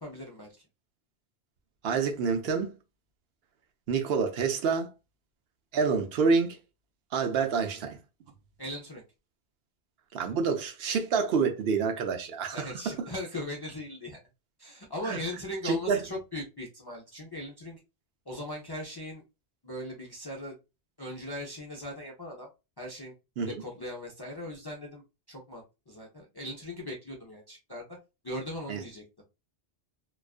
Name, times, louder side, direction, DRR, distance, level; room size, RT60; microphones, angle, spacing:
voice 1, 0.0-0.5 8.6-9.0 12.5-14.2 14.6-17.8 18.3-19.2 19.6-20.6 21.0-22.5 22.8-23.1 23.5-25.0 25.3-27.9 28.2-29.0, left 1 dB, 35° left, 0.4 m, -39 dB
voice 2, 1.8-2.7 3.9-4.9 5.7-6.6 7.1-8.0 10.1-12.9 15.0-15.2 15.6-16.0 23.4-23.6 28.7-28.8, right 5 dB, 70° right, 0.8 m, -27 dB
2.3 x 2.3 x 2.4 m
omnidirectional pair, 1.1 m